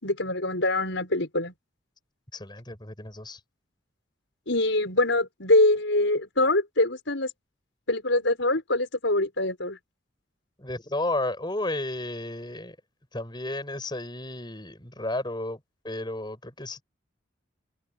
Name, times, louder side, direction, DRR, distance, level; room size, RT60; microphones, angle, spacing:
voice 1, 0.0-1.5 4.5-7.3 7.9-9.8, left 2 dB, 70° left, 5.9 m, -24 dB
voice 2, 2.3-3.4 10.6-12.8 13.1-15.6 15.8-16.8, left 1 dB, 20° left, 7.1 m, -32 dB
open air
head